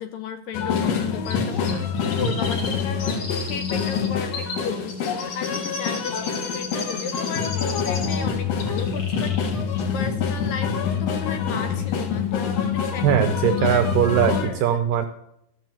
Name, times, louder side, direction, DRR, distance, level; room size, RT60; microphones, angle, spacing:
voice 1, 0.0-13.9 14.3-14.8, left 6 dB, 80° left, 8 dB, 2.1 m, -35 dB
sound 1, 0.5-14.5, left 6 dB, 65° left, 1.8 m, -26 dB
Chirp tweet, 1.3-8.3 8.6-9.5 9.8-9.9, left 3 dB, 50° left, 2.7 m, -35 dB
voice 2, 13.0-15.1, right 10 dB, 80° right, 8 dB, 2.0 m, -20 dB
13.5 x 7.6 x 7.6 m, 0.80 s
omnidirectional pair, 4.6 m